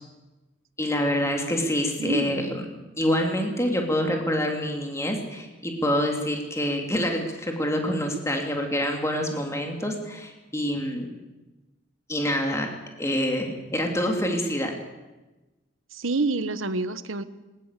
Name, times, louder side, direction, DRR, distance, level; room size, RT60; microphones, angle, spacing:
voice 1, 0.8-2.6 3.0-11.1 12.1-12.7 13.0-14.7, equal, 15° left, 2 dB, 2.8 m, -26 dB
voice 2, 2.0-2.5 15.9-17.2, right 3 dB, 90° right, 13 dB, 1.2 m, -28 dB
20.5 x 19.5 x 8.3 m, 1.1 s
head